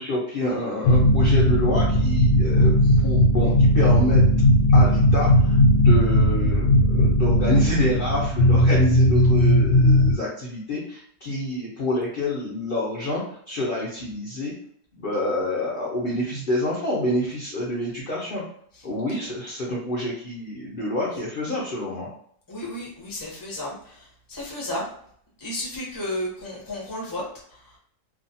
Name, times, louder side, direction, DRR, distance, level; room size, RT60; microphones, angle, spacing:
voice 1, 0.0-4.2 4.7-14.5 14.9-18.4 18.8-22.1, left 1 dB, 55° left, -6 dB, 0.6 m, -27 dB
sound 1, 0.8-10.2, left 1 dB, 80° left, 1.1 m, -17 dB
voice 2, 22.5-24.9 25.4-27.2 27.5-27.8, left 1 dB, 20° left, -4 dB, 0.7 m, -33 dB
2.7 x 2.4 x 2.6 m, 0.63 s
omnidirectional pair, 1.7 m